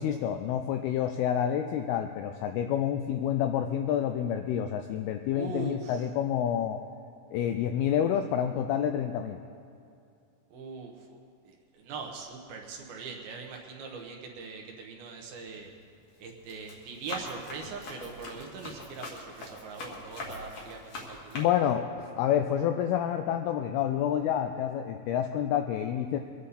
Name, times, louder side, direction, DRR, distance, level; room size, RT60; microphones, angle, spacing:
voice 1, 0.0-6.8 7.3-9.4 21.3-26.2, left 9 dB, 85° left, 6 dB, 2.2 m, -28 dB
voice 2, 5.3-6.1 10.5-11.2 11.4-15.7 16.2-21.5, right 5 dB, 70° right, 2 dB, 2.7 m, -41 dB
Run, 15.3-15.7 16.2-21.4, left 2 dB, 55° left, 1.9 m, -42 dB
23.0 x 9.6 x 4.2 m, 2.5 s
omnidirectional pair, 5.0 m